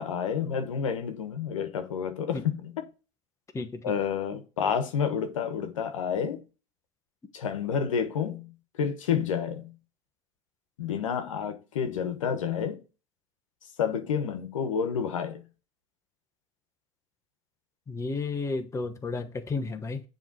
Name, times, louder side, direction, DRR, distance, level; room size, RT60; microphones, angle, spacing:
voice 1, 0.0-2.8 3.8-6.4 7.3-9.8 10.8-12.8 13.8-15.4, left 7 dB, 90° left, 1.1 m, -29 dB
voice 2, 17.9-20.0, left 3 dB, 20° left, 1.0 m, -32 dB
7.1 x 3.3 x 6.1 m
hypercardioid pair, 100°, 16 cm